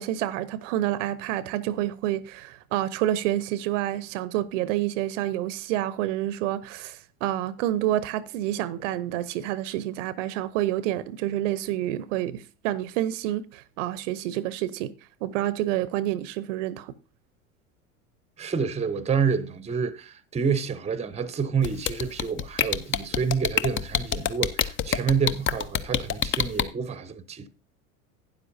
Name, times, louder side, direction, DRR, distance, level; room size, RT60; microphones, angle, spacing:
voice 1, 0.0-14.9 15.2-16.9, right 13 dB, 60° right, 0.7 m, -28 dB
voice 2, 18.4-27.5, right 6 dB, 15° right, 0.8 m, -28 dB
sound 1, 21.6-26.6, left 9 dB, 30° left, 0.7 m, -25 dB
12.0 x 9.6 x 2.7 m
hypercardioid pair, 85°, 43 cm